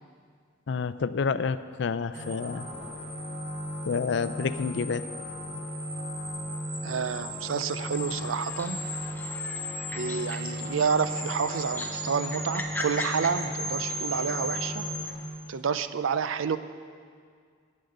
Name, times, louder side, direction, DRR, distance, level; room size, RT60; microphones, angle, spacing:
voice 1, 0.7-2.6 3.8-5.0, left 5 dB, 60° left, 14 dB, 0.4 m, -29 dB
sound 1, 2.1-15.1, equal, 30° right, 2.7 m, -35 dB
voice 2, 6.8-8.8 9.9-14.8 15.5-16.6, right 6 dB, 85° right, 12 dB, 0.5 m, -29 dB
sound 2, 7.9-15.4, left 1 dB, 10° left, 0.7 m, -41 dB
11.5 x 8.7 x 6.5 m, 2.1 s
head